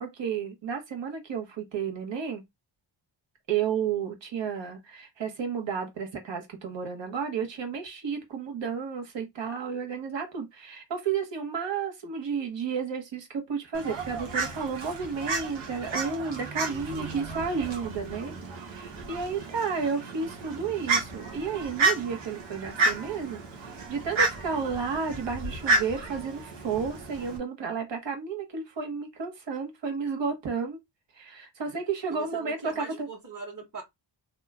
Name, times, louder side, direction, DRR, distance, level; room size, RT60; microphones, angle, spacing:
voice 1, 0.0-2.4 3.5-18.3 18.6-30.8 31.1-33.1, right 6 dB, 70° right, 1.3 m, -32 dB
Fowl, 13.7-27.4, right 3 dB, 85° right, 1.2 m, -31 dB
voice 2, 16.7-17.2 31.6-31.8 32.1-33.8, right 4 dB, 40° right, 1.5 m, -42 dB
2.8 x 2.3 x 3.5 m
cardioid pair, 75°, 46 cm